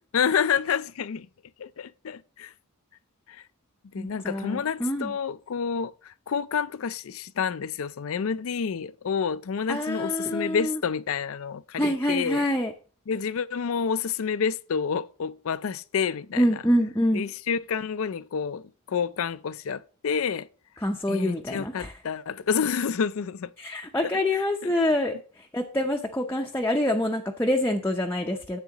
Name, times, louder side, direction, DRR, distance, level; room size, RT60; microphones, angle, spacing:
voice 1, 0.1-1.3 1.6-2.5 3.3-3.4 3.9-12.4 13.1-16.6 17.1-20.5 21.1-23.5 24.3-24.7, left 6 dB, 65° left, 0.4 m, -29 dB
voice 2, 4.0-5.1 9.7-10.8 11.8-12.7 16.4-17.3 20.8-21.9 23.6-28.6, left 1 dB, 10° left, 0.6 m, -26 dB
10.0 x 8.1 x 2.9 m
head